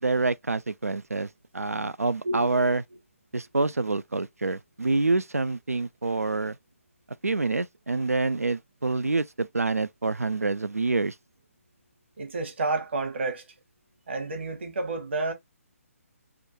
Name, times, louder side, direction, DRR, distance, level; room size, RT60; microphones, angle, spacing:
voice 1, 0.0-2.8 3.3-6.6 7.2-11.2, right 3 dB, 85° right, 0.4 m, -27 dB
voice 2, 12.2-13.4 14.1-15.3, right 3 dB, 50° right, 1.0 m, -30 dB
3.5 x 2.2 x 2.8 m
figure-of-eight pair, 140°, 8 cm